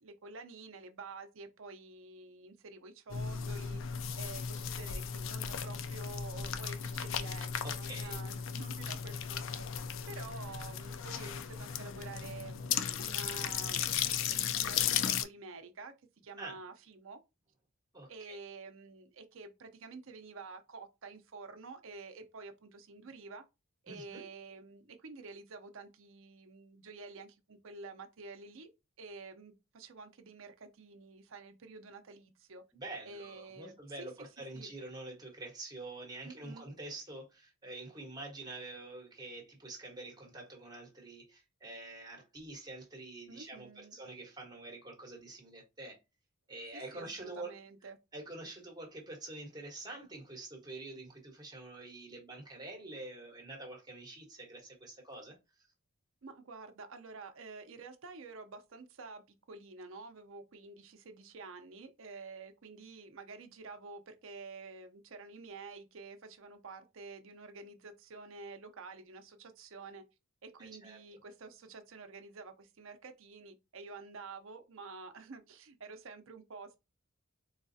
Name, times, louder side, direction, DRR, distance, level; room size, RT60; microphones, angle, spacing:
voice 1, 0.0-9.6 10.0-15.9 16.2-17.2 18.1-23.4 23.8-28.7 29.0-32.6 33.0-34.1 34.5-34.7 36.2-36.7 43.3-44.0 46.7-48.0 56.2-59.2 59.5-70.0 70.4-76.8, right 3 dB, 65° right, 0.6 m, -49 dB
sound 1, 3.1-15.2, left 8 dB, 60° left, 0.4 m, -36 dB
voice 2, 7.6-8.2 16.4-16.6 17.9-18.4 23.9-24.2 32.7-46.0 46.5-47.5 48.1-55.4 70.6-71.0, right 2 dB, 20° right, 1.2 m, -46 dB
3.9 x 2.3 x 2.7 m
head